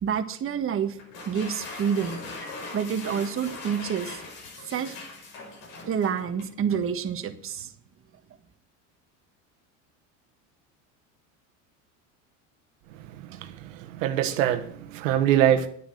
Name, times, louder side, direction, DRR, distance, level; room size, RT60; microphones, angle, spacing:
voice 1, 0.0-1.0 1.3-2.2 2.7-4.2 4.6-5.0 5.8-7.7, right 7 dB, 35° right, 6 dB, 1.5 m, -28 dB
sound 1, 1.0-6.6, left 3 dB, 65° left, 5.5 m, -40 dB
voice 2, 13.0-15.7, right 11 dB, 80° right, 7 dB, 1.4 m, -24 dB
10.0 x 9.2 x 6.5 m, 0.62 s
supercardioid pair, 105°, 38 cm